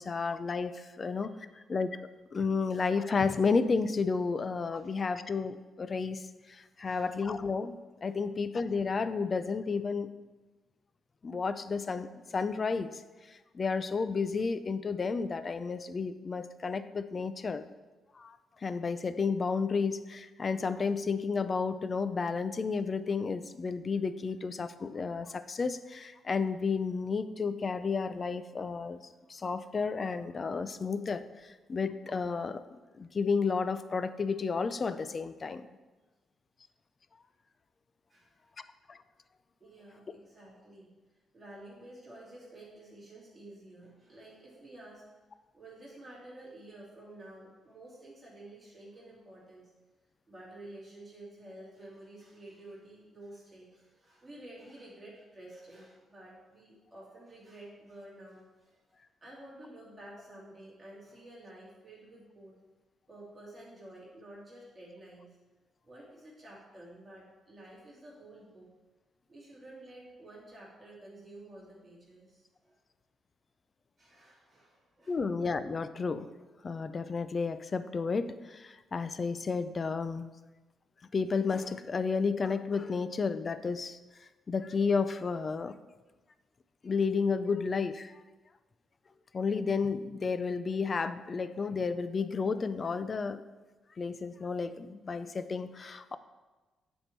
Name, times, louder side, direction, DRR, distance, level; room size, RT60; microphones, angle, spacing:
voice 1, 0.0-2.0 2.3-10.1 11.2-12.1 12.3-17.7 18.1-29.0 29.3-35.7 38.9-39.0 75.1-76.3 76.6-80.3 81.1-85.8 86.8-88.2 89.3-93.4 94.0-96.2, left 5 dB, 30° left, 12 dB, 0.4 m, -32 dB
voice 2, 1.0-1.6 4.8-4.9 6.8-7.1 38.1-38.5 39.6-40.9 41.3-45.0 45.5-49.7 50.3-62.6 63.1-65.4 65.8-68.7 69.3-72.8 74.0-75.2, right 1 dB, 15° right, -7 dB, 2.8 m, -51 dB
9.9 x 4.4 x 4.5 m, 1.2 s
cardioid pair, 145°, 0 cm